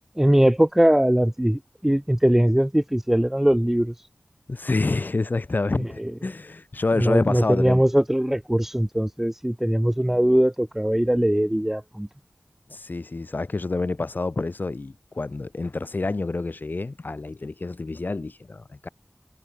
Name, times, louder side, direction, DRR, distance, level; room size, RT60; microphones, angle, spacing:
voice 1, 0.2-4.1 6.0-6.1 7.0-12.1, equal, 10° right, 0.4 m, -21 dB
voice 2, 4.5-7.8 12.7-18.9, left 3 dB, 55° left, 0.9 m, -28 dB
wide cardioid pair, 45°, 4 cm